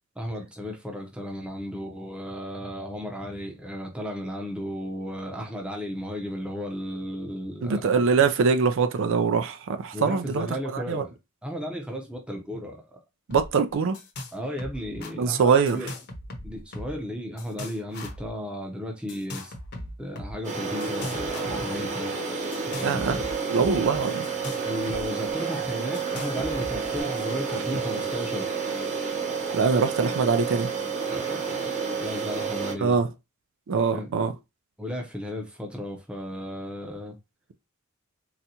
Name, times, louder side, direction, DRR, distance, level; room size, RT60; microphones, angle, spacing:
voice 1, 0.2-7.8 9.9-11.1 11.4-12.8 14.3-15.9 16.4-19.5 20.0-22.1 22.6-23.2 24.5-28.6 31.1-31.7 32.0-33.0 33.9-34.2 34.8-37.2, equal, 5° right, 0.6 m, -34 dB
voice 2, 7.6-11.0 13.3-14.0 15.2-15.9 22.8-23.2 23.5-24.3 29.5-30.7 32.8-33.1 33.7-34.3, right 5 dB, 65° right, 0.4 m, -23 dB
sound 1, 13.3-13.5 13.7-14.3 14.6-15.1 15.7-17.1 17.4-18.3 19.1-20.3 20.8-21.9 22.5-25.0 25.3-25.4 25.9-27.0, left 1 dB, 50° left, 0.8 m, -39 dB
sound 2, 20.4-32.7, right 5 dB, 35° right, 0.8 m, -30 dB
4.0 x 2.2 x 2.8 m
head